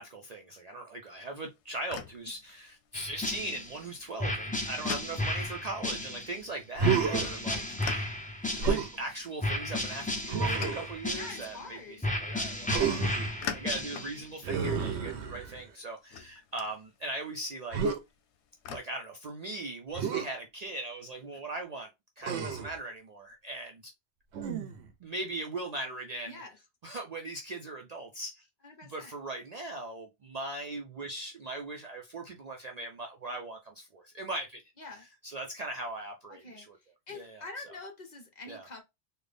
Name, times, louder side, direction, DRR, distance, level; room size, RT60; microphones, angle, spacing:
voice 1, 0.0-8.1 8.4-17.9 18.7-21.9 22.2-23.9 25.0-26.4 26.8-28.5 28.9-34.6 34.9-36.8 37.1-37.5 38.5-38.7, right 2 dB, 50° right, 0.5 m, -39 dB
sound 1, 1.3-18.8, left 8 dB, 85° left, 0.9 m, -47 dB
sound 2, 2.9-3.8 4.2-6.4 6.8-9.0 9.4-11.6 12.0-14.2, left 1 dB, 10° left, 0.6 m, -34 dB
Human voice, 6.7-7.4 8.6-9.0 10.3-10.9 12.7-13.3 14.4-15.7 17.7-18.0 19.9-20.3 22.2-22.8 24.3-24.9, right 6 dB, 85° right, 0.9 m, -30 dB
voice 2, 11.1-12.0 26.3-26.6 28.6-29.1 34.8-35.0 36.3-36.7 37.1-38.8, left 3 dB, 45° left, 0.9 m, -45 dB
3.8 x 2.2 x 3.3 m
omnidirectional pair, 1.1 m